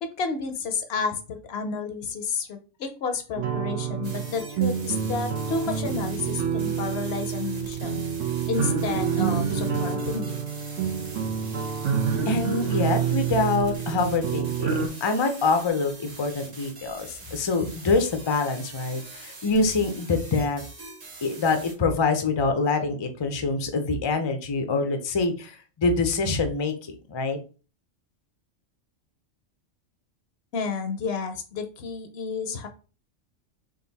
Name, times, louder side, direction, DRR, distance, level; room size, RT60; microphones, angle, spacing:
voice 1, 0.2-8.0 8.5-10.4 30.5-32.7, left 5 dB, 65° left, 7 dB, 0.8 m, -31 dB
sound 1, 3.4-14.9, right 7 dB, 75° right, 1.1 m, -27 dB
sound 2, 4.0-21.7, right 3 dB, 40° right, 0.8 m, -44 dB
voice 2, 12.3-14.7 15.0-20.6 21.2-26.7 27.1-27.4, left 3 dB, 40° left, 6 dB, 0.4 m, -25 dB
3.8 x 2.5 x 4.0 m, 0.35 s
omnidirectional pair, 1.3 m